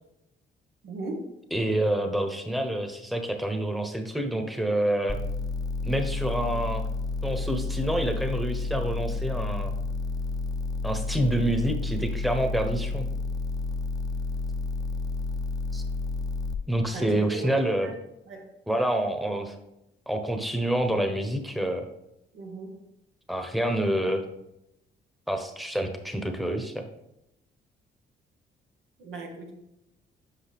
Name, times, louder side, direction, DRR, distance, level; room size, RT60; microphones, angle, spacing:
voice 1, 0.8-1.2 16.9-17.9 18.3-18.5 22.3-22.8 29.0-29.5, right 2 dB, 90° right, 1 dB, 1.5 m, -37 dB
voice 2, 1.5-5.2 5.8-6.8 7.2-9.7 10.8-13.1 15.7-15.8 16.6-17.9 18.7-19.5 20.1-21.8 23.3-24.2 25.3-26.8, right 1 dB, ahead, 5 dB, 1.0 m, -27 dB
sound 1, 5.1-16.5, left 3 dB, 20° left, 0.6 m, -30 dB
8.4 x 5.4 x 3.5 m, 0.86 s
cardioid pair, 90°, 20 cm